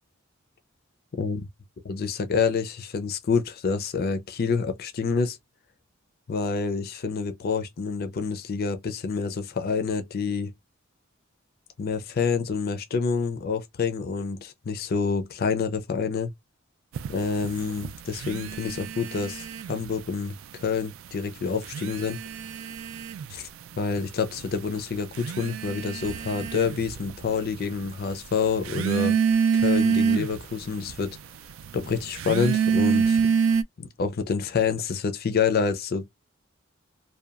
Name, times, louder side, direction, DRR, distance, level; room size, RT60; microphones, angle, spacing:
voice 1, 1.1-1.5 1.8-5.4 6.3-10.5 11.8-16.3 17.1-22.2 23.3-23.5 23.8-29.2 29.5-31.2 31.7-33.2 33.8-36.1, left 5 dB, 50° left, 0.5 m, -27 dB
sound 1, 16.9-20.0 20.3-21.1 21.5-33.6, right 6 dB, 75° right, 0.3 m, -27 dB
2.8 x 2.2 x 2.3 m
head